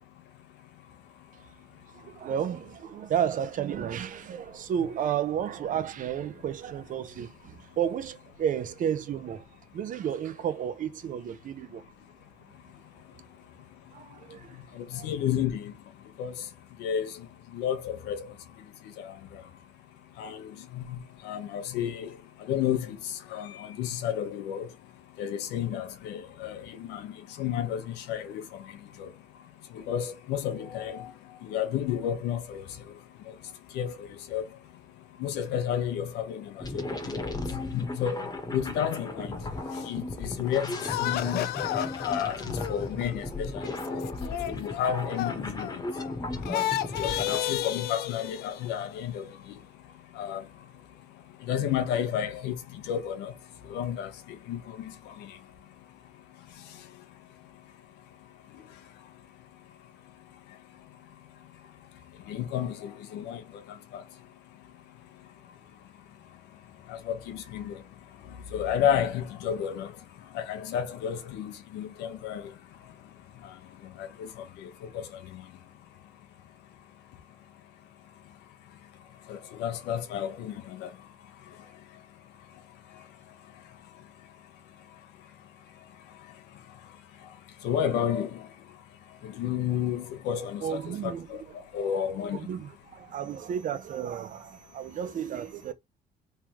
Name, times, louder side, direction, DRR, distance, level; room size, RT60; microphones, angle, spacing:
voice 1, 1.9-9.5 9.7-11.8 13.9-14.6 14.9-15.1 90.6-91.8 92.3-95.7, right 9 dB, 50° right, 0.7 m, -32 dB
voice 2, 14.7-15.7 16.2-16.3 16.8-17.1 17.5-18.3 19.0-19.1 20.2-22.1 22.4-24.7 25.2-28.6 29.0-29.1 29.7-31.1 31.4-32.7 33.7-34.4 35.2-37.2 37.7-39.4 39.9-43.5 44.4-45.8 46.5-46.6 47.0-49.3 50.2-50.4 51.5-53.3 53.7-54.1 54.5-55.3 62.3-63.4 63.9-64.0 66.9-67.8 68.5-69.9 70.3-72.5 74.0-74.3 74.6-75.4 79.3-80.9 87.6-88.4 89.2-91.4 91.7-92.4, left 9 dB, 85° left, 0.9 m, -31 dB
sound 1, 36.6-47.4, left 2 dB, 20° left, 1.1 m, -36 dB
sound 2, 40.7-46.1 46.4-48.9, left 13 dB, 70° left, 0.4 m, -33 dB
3.5 x 3.3 x 2.9 m
cardioid pair, 110°, 17 cm